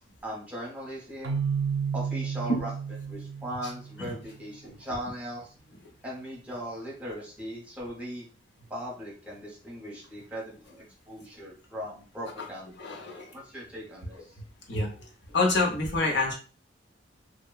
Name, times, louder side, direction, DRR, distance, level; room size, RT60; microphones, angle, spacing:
voice 1, 0.2-1.4 1.9-2.7 3.1-5.5 6.0-8.3 8.7-12.8 13.3-14.3, equal, 10° right, -4 dB, 0.7 m, -39 dB
Keyboard (musical), 1.2-4.1, right 6 dB, 85° right, 0.4 m, -31 dB
voice 2, 12.8-13.3 14.7-16.4, left 2 dB, 65° left, -1 dB, 0.7 m, -27 dB
2.8 x 2.0 x 2.3 m, 0.38 s
head